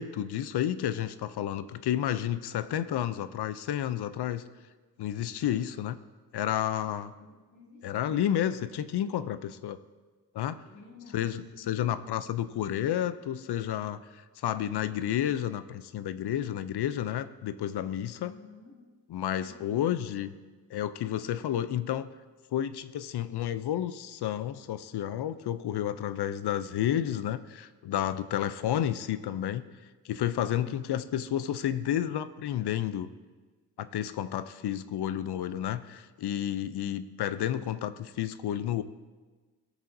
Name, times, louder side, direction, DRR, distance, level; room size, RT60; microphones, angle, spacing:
voice 1, 0.0-4.4 5.0-6.0 6.3-7.1 7.8-9.8 10.3-10.6 11.1-14.0 14.4-18.3 19.1-20.3 20.7-22.1 22.5-29.6 30.0-33.1 33.8-38.8, left 11 dB, 75° left, 14 dB, 0.5 m, -31 dB
voice 2, 6.8-8.1 10.6-12.1 18.2-18.9 19.4-20.4, left 2 dB, 45° left, -2 dB, 2.2 m, -52 dB
16.0 x 6.9 x 2.6 m, 1.4 s
cardioid pair, 85°, 40 cm